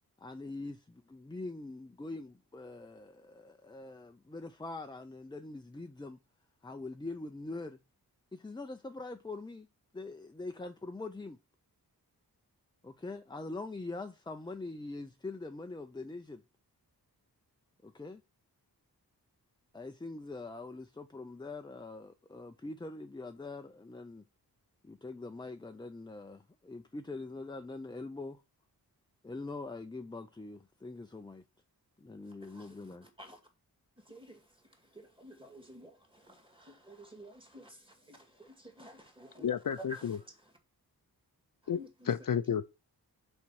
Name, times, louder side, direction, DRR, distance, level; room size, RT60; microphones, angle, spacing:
voice 1, 0.2-6.2 6.6-7.8 8.3-9.7 9.9-11.4 12.8-16.4 17.8-18.2 19.7-24.2 24.8-28.4 29.2-31.4 32.0-33.1, left 3 dB, 10° left, 0.5 m, -43 dB
voice 2, 32.2-33.4 34.0-40.5 41.6-42.1, right 1 dB, 15° right, 2.1 m, -52 dB
voice 3, 39.4-40.2 41.7-41.8 42.1-42.7, left 8 dB, 60° left, 0.6 m, -31 dB
6.1 x 4.5 x 5.8 m
wide cardioid pair, 110°, 38 cm